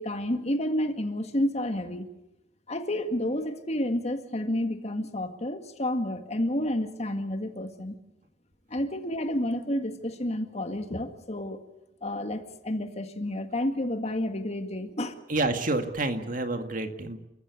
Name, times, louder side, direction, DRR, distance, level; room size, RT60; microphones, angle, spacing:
voice 1, 0.0-2.1 2.7-8.0 8.7-11.6 12.0-15.1, left 1 dB, 35° left, 7 dB, 2.0 m, -30 dB
voice 2, 15.3-17.2, right 2 dB, 50° right, 7 dB, 2.0 m, -28 dB
29.5 x 14.5 x 8.4 m, 0.88 s
head